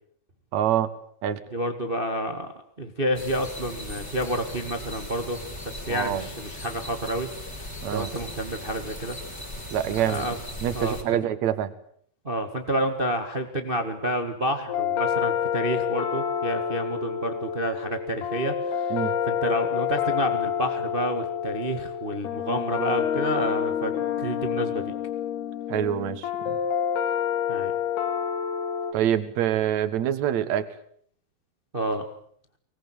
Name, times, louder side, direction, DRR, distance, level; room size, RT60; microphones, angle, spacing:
voice 1, 0.5-0.9 1.2-1.4 5.9-6.3 7.8-8.1 9.7-11.7 18.9-19.1 25.7-26.6 28.9-30.7, right 10 dB, 55° right, 12 dB, 2.3 m, -26 dB
voice 2, 1.5-2.5 2.8-5.4 5.6-7.3 7.9-9.2 10.0-10.4 10.7-11.0 12.2-19.0 19.3-24.9 27.5-27.7 31.7-32.0, right 1 dB, 70° right, 7 dB, 0.5 m, -29 dB
sound 1, 3.1-11.0, left 1 dB, 15° left, 5.2 m, -38 dB
sound 2, 14.7-28.9, left 9 dB, 75° left, 4.1 m, -28 dB
24.5 x 20.0 x 8.9 m, 0.64 s
omnidirectional pair, 4.8 m